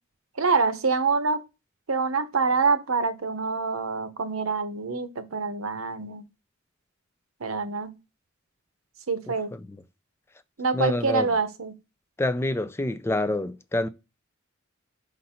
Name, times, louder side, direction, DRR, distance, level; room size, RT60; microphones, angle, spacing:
voice 1, 0.4-1.4 1.9-6.2 7.4-8.0 9.1-9.5 10.6-11.7, right 4 dB, 90° right, 0.9 m, -26 dB
voice 2, 10.7-11.3 12.2-13.9, left 1 dB, 10° left, 0.4 m, -27 dB
5.2 x 4.0 x 5.7 m
head